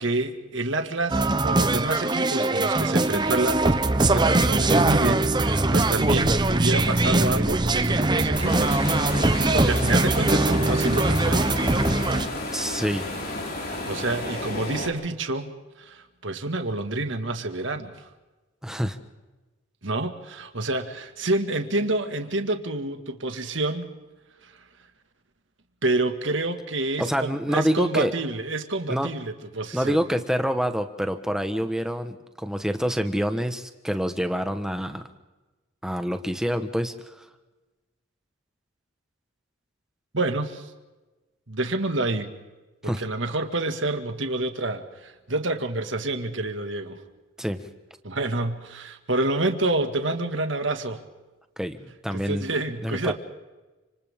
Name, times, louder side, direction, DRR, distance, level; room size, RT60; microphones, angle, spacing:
voice 1, 0.0-8.8 9.5-11.5 13.6-15.5 15.8-18.1 19.8-24.0 24.4-24.5 25.8-30.0 40.1-40.7 41.5-42.3 42.8-47.0 48.0-51.0 52.1-53.1, right 2 dB, 65° right, 6 dB, 2.0 m, -28 dB
sound 1, 1.1-12.3, right 2 dB, 20° right, 0.8 m, -22 dB
sound 2, 8.3-14.9, left 2 dB, 50° left, 4.9 m, -32 dB
voice 2, 12.5-13.1 18.6-19.0 27.0-28.1 28.9-29.1 29.7-35.0 35.8-37.2 42.8-43.0 47.4-47.6 51.6-52.4 52.8-53.1, equal, 5° right, 7 dB, 1.3 m, -27 dB
30.0 x 27.0 x 3.8 m, 1.2 s
head